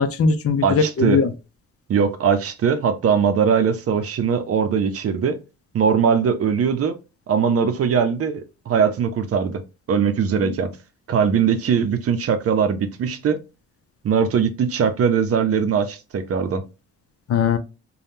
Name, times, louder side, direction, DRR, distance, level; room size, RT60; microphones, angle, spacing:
voice 1, 0.0-1.3 10.4-10.6 17.3-17.6, left 5 dB, 50° left, 0.6 m, -20 dB
voice 2, 0.6-1.2 1.9-5.4 5.7-7.0 7.3-9.6 9.9-10.7 11.1-13.4 14.0-16.6, right 6 dB, 50° right, 0.6 m, -20 dB
3.5 x 2.3 x 2.7 m
cardioid pair, 90°, 30 cm